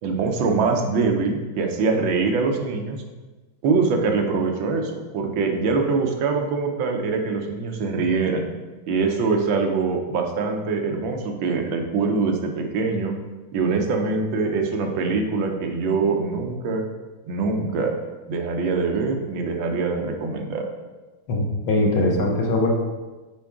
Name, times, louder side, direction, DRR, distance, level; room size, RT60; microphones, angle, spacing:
voice 1, 0.0-3.0 3.6-8.5 8.9-13.2 13.5-16.8 17.2-17.9 18.3-20.7, right 4 dB, 80° right, 3 dB, 1.6 m, -23 dB
voice 2, 21.3-22.7, left 2 dB, 85° left, 1 dB, 1.9 m, -21 dB
8.7 x 4.6 x 3.6 m, 1.2 s
omnidirectional pair, 2.1 m